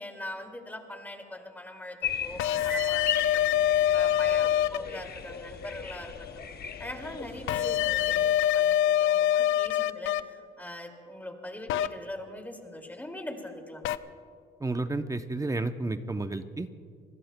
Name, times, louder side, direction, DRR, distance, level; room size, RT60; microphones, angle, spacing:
voice 1, 0.0-3.5 3.9-6.3 6.8-13.8, left 1 dB, 10° left, 3 dB, 2.4 m, -42 dB
sound 1, 2.0-8.3, left 6 dB, 50° left, 0.9 m, -37 dB
sound 2, 2.4-4.8 7.5-10.2 11.7-11.9 13.8-14.0, left 11 dB, 85° left, 0.5 m, -24 dB
voice 2, 14.6-16.8, right 2 dB, 15° right, 9 dB, 0.7 m, -31 dB
27.5 x 20.5 x 2.2 m, 2.3 s
cardioid pair, 90°, 20 cm